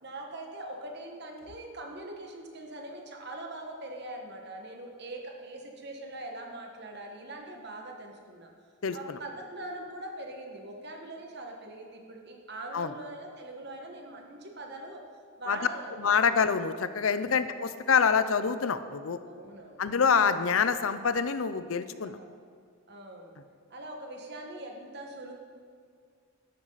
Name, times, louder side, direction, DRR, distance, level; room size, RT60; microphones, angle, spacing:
voice 1, 0.0-8.5 8.9-15.0 15.4-16.2 17.1-17.5 19.2-19.9 22.0-22.3 22.9-23.3 23.7-25.3, right 1 dB, 50° right, 2 dB, 1.7 m, -42 dB
voice 2, 8.8-9.2 12.7-12.9 15.5-15.6 16.0-19.2 19.8-22.2, left 6 dB, 75° left, 12 dB, 0.6 m, -26 dB
13.0 x 11.0 x 4.1 m, 2.2 s
head